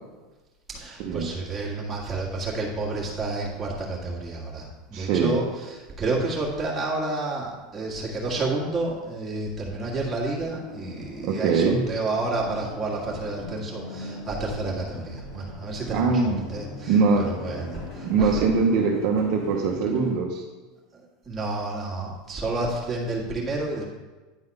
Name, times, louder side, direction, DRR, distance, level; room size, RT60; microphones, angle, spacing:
voice 1, 0.7-17.0 17.2-18.4 21.3-23.8, right 2 dB, 15° right, -5 dB, 1.8 m, -30 dB
voice 2, 4.9-5.4 11.2-11.8 15.9-16.4 16.9-17.3 18.0-20.4, right 4 dB, 50° right, 0 dB, 0.9 m, -22 dB
sound 1, 10.0-20.1, left 2 dB, 45° left, 1.9 m, -40 dB
9.9 x 3.9 x 5.4 m, 1.2 s
supercardioid pair, 165°, 0 cm